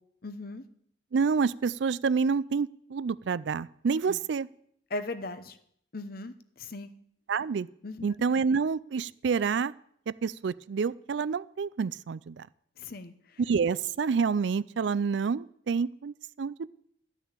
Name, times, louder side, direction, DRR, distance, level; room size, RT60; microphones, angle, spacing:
voice 1, 0.2-0.6 4.1-4.2 4.9-5.6 5.9-6.9 7.8-8.1 12.8-13.4, left 2 dB, 50° left, 11 dB, 0.9 m, -38 dB
voice 2, 1.1-4.5 7.3-7.7 8.0-9.7 10.1-12.5 13.5-16.7, right 5 dB, 70° right, 19 dB, 0.4 m, -28 dB
13.0 x 6.2 x 8.9 m, 0.67 s
head